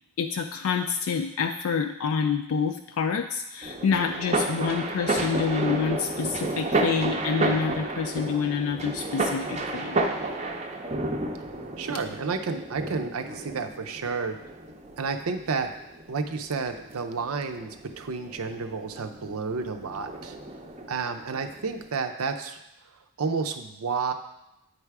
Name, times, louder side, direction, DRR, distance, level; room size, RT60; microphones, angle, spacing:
voice 1, 0.2-10.0, left 5 dB, 75° left, 6 dB, 0.3 m, -27 dB
sound 1, 3.6-21.9, right 2 dB, 30° right, 0.5 m, -32 dB
voice 2, 11.8-14.4 15.0-15.7 16.1-20.4 20.9-22.6 23.2-24.1, right 4 dB, 85° right, 6 dB, 0.6 m, -31 dB
8.9 x 3.4 x 4.7 m, 0.87 s
head